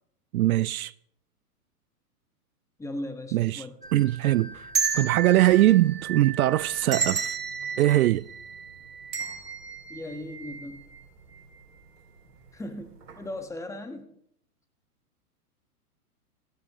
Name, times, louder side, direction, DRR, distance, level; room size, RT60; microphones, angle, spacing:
voice 1, 0.3-0.9 3.3-3.6 3.9-4.7 5.0-7.3 7.8-8.3, right 15 dB, 70° right, 0.5 m, -22 dB
voice 2, 2.8-3.8 9.9-10.8 12.5-14.1, left 1 dB, 5° left, 1.5 m, -37 dB
sound 1, 3.8-11.0 11.3-11.4 12.4-12.7 13.0-13.2, right 6 dB, 85° right, 2.8 m, -33 dB
16.5 x 16.0 x 3.1 m
hypercardioid pair, 120°, 46 cm